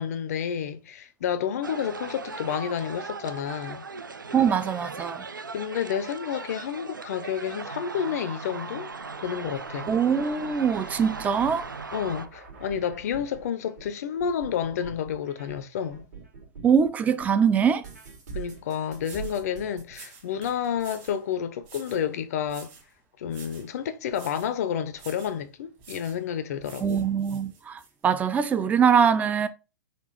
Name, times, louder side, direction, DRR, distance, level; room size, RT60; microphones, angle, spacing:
voice 1, 0.0-3.8 5.5-8.9 9.2-9.9 11.9-16.0 18.3-22.7 23.2-27.1, left 8 dB, 50° left, 0.5 m, -30 dB
sound 1, 1.6-12.3, right 4 dB, 80° right, 0.4 m, -38 dB
voice 2, 4.3-5.2 9.9-11.7 16.6-17.9 26.8-29.5, right 7 dB, 15° right, 0.4 m, -23 dB
sound 2, 8.9-16.9 17.2-19.8, right 6 dB, 60° right, 1.9 m, -44 dB
sound 3, 18.6-18.7 19.0-19.4 19.9-21.2 21.6-22.1 22.5-22.9 23.3-23.7 24.1-24.5 25.0-25.4 25.8-26.2 26.6-27.9, right 5 dB, 35° right, 1.6 m, -48 dB
4.2 x 2.9 x 3.0 m
figure-of-eight pair, 105°, 11 cm